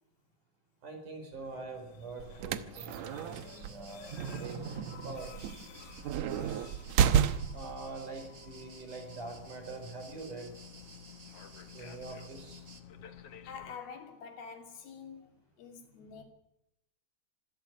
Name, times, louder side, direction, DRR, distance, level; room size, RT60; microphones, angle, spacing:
voice 1, 0.8-4.6 5.0-5.7 6.2-6.8 7.5-10.6 11.7-12.6, right 3 dB, 55° right, 6.5 m, -44 dB
sound 1, 1.3-13.8, left 8 dB, 55° left, 1.9 m, -52 dB
sound 2, 2.2-7.8, right 8 dB, 75° right, 1.7 m, -31 dB
sound 3, 3.3-12.8, right 3 dB, 30° right, 1.7 m, -54 dB
voice 2, 13.4-16.2, left 6 dB, 80° left, 4.7 m, -47 dB
26.0 x 13.0 x 8.4 m
omnidirectional pair, 4.3 m